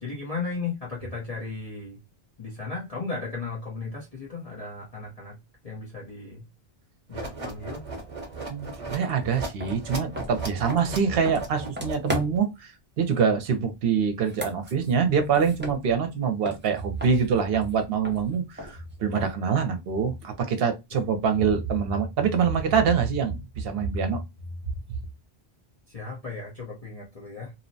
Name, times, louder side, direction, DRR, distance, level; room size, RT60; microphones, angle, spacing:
voice 1, 0.0-2.0 2.4-5.4 5.6-6.4 7.1-7.8 25.9-27.5, left 4 dB, 40° left, 0.8 m, -35 dB
sound 1, 7.1-12.4, right 3 dB, 35° right, 0.9 m, -36 dB
voice 2, 8.5-24.2, right 6 dB, 70° right, 0.9 m, -25 dB
sound 2, 9.0-9.1 9.6-12.6 14.1-16.2 16.4-19.5, left 1 dB, 15° right, 0.5 m, -38 dB
2.8 x 2.1 x 2.6 m
omnidirectional pair, 1.1 m